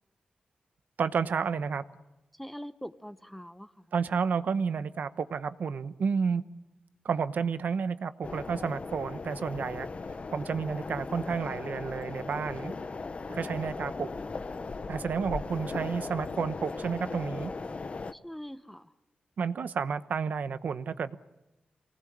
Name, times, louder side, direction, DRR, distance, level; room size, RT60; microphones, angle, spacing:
voice 1, 1.0-1.8 3.9-6.4 7.0-9.9 10.3-12.7 13.3-14.1 14.9-17.5 19.4-21.2, right 6 dB, 75° right, 12 dB, 1.0 m, -31 dB
voice 2, 2.3-3.8 18.1-18.9, equal, 5° left, 12 dB, 1.0 m, -43 dB
sound 1, 8.2-18.1, left 4 dB, 45° left, 0.9 m, -38 dB
25.0 x 19.0 x 8.7 m, 0.98 s
cardioid pair, 80°, 3 cm